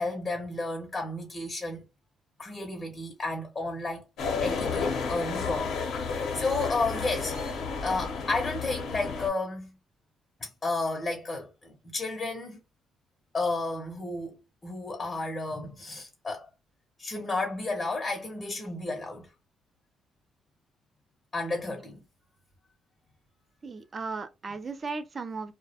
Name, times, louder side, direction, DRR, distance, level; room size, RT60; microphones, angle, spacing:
voice 1, 0.0-1.8 2.4-4.0 4.4-7.4 7.8-9.7 10.4-12.6 13.3-16.5 17.0-19.3 21.3-22.0, left 3 dB, 35° left, 0.7 m, -32 dB
sound 1, 4.2-9.3, left 5 dB, 80° left, 0.7 m, -32 dB
voice 2, 23.6-25.5, right 4 dB, 40° right, 0.4 m, -36 dB
2.3 x 2.1 x 2.7 m
cardioid pair, 90°, 0 cm